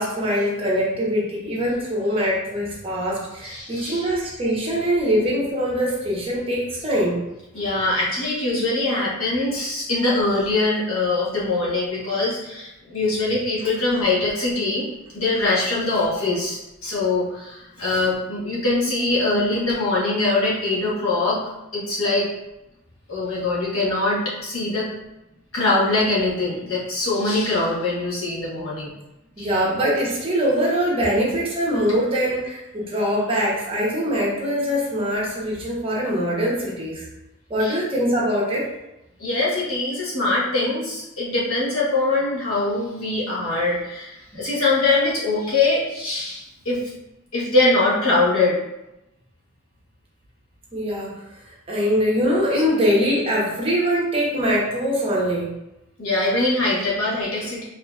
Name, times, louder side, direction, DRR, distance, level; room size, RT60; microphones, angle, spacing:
voice 1, 0.0-7.2 29.4-37.0 37.5-38.7 50.7-51.2 51.7-55.5, equal, 25° right, -5 dB, 1.0 m, -23 dB
voice 2, 3.4-4.1 7.5-14.9 15.1-21.4 21.7-22.3 23.1-24.9 25.5-28.9 29.4-29.5 37.6-37.8 39.2-46.8 47.3-48.6 56.0-57.6, left 2 dB, 80° left, -6 dB, 1.4 m, -23 dB
4.9 x 3.1 x 2.4 m, 0.93 s
head